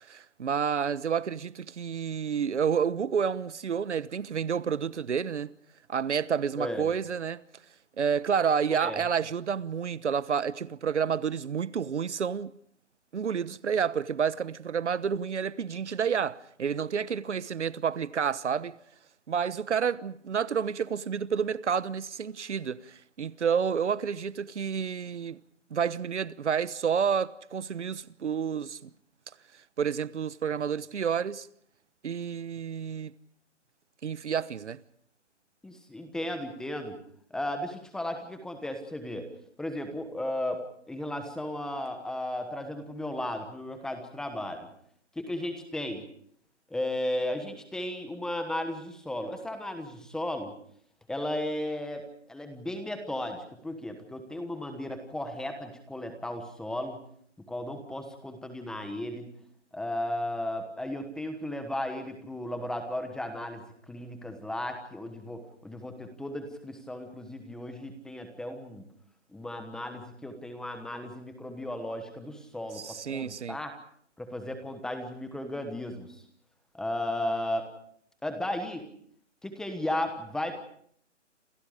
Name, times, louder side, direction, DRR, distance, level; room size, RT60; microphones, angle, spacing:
voice 1, 0.0-5.5 5.9-7.4 8.0-12.5 13.1-18.7 19.3-25.4 25.7-28.9 29.8-31.5 32.0-33.1 34.0-34.8 72.7-73.6, right 7 dB, 70° right, 1.2 m, -29 dB
voice 2, 6.6-6.9 8.7-9.0 35.6-37.0 37.3-39.3 39.6-44.7 45.1-46.0 46.7-50.5 51.1-57.0 57.5-59.3 59.7-68.8 69.3-73.7 74.2-76.2 76.7-77.7 78.2-78.9 79.4-80.6, left 1 dB, ahead, 1.2 m, -35 dB
29.0 x 28.0 x 5.1 m
hypercardioid pair, 160°, 37 cm